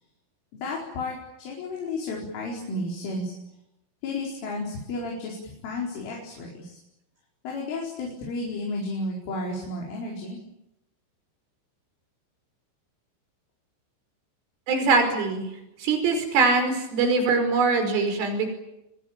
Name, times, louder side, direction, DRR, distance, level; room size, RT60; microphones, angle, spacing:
voice 1, 0.6-3.3 4.0-6.8 7.4-10.4, left 2 dB, 80° left, -2 dB, 7.3 m, -32 dB
voice 2, 14.7-15.5 15.8-18.5, right 4 dB, 85° right, 6 dB, 7.6 m, -22 dB
28.0 x 22.5 x 8.9 m, 0.89 s
omnidirectional pair, 5.6 m